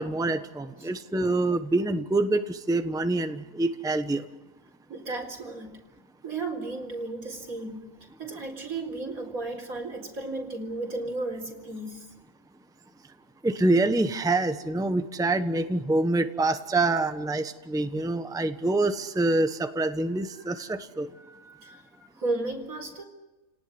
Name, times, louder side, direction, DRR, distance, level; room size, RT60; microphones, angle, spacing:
voice 1, 0.0-4.2 13.4-21.1, right 2 dB, 5° right, 9 dB, 1.1 m, -26 dB
voice 2, 4.9-5.8 6.2-7.8 8.2-12.1 20.4-20.7 21.1-23.0, right 2 dB, 80° right, 4 dB, 4.6 m, -34 dB
30.0 x 18.5 x 9.8 m, 1.1 s
omnidirectional pair, 1.5 m